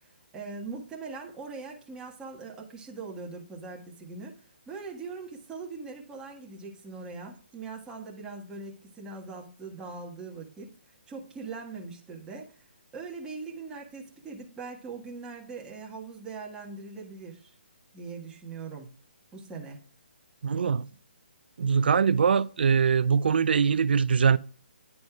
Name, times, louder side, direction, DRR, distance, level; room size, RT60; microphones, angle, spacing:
voice 1, 0.3-4.3 4.7-10.7 11.1-12.6 12.9-17.5 17.9-19.0 19.3-19.9, right 4 dB, 10° right, 1.5 m, -41 dB
voice 2, 20.4-20.9 21.6-24.4, right 6 dB, 65° right, 0.4 m, -22 dB
11.0 x 4.1 x 2.3 m
hypercardioid pair, 150°, 6 cm